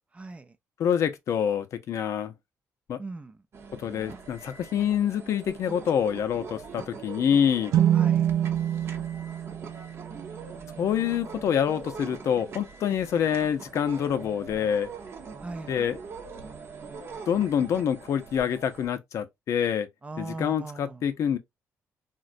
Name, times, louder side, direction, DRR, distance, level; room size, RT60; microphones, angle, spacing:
voice 1, 0.2-0.5 3.0-3.4 7.9-8.3 15.4-15.9 20.0-21.1, right 2 dB, 20° right, 0.4 m, -39 dB
voice 2, 0.8-2.3 2.9-3.0 3.8-7.7 10.8-14.9 15.7-16.0 17.3-19.9 20.2-21.4, left 8 dB, 65° left, 0.5 m, -26 dB
sound 1, 3.5-18.9, right 5 dB, 50° right, 0.7 m, -43 dB
sound 2, 7.7-11.3, right 10 dB, 90° right, 0.5 m, -26 dB
3.8 x 2.1 x 2.5 m
cardioid pair, 110°, 6 cm